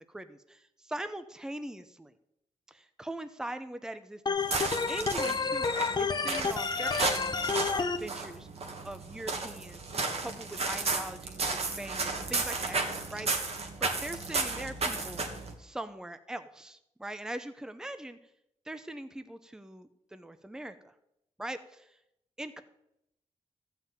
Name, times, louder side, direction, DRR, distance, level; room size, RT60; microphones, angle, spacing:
voice 1, 0.0-2.1 2.7-4.6 4.9-8.5 8.8-9.8 10.2-12.8 13.1-13.3 13.8-15.2 15.6-18.2 18.7-20.9 21.4-22.0 22.4-22.6, right 1 dB, 5° right, 11 dB, 0.6 m, -41 dB
Organ, 4.3-8.0, left 5 dB, 35° left, 0.8 m, -30 dB
sound 1, 4.4-15.5, right 3 dB, 50° right, 1.9 m, -34 dB
14.5 x 5.8 x 9.0 m, 0.81 s
wide cardioid pair, 180°, 13 cm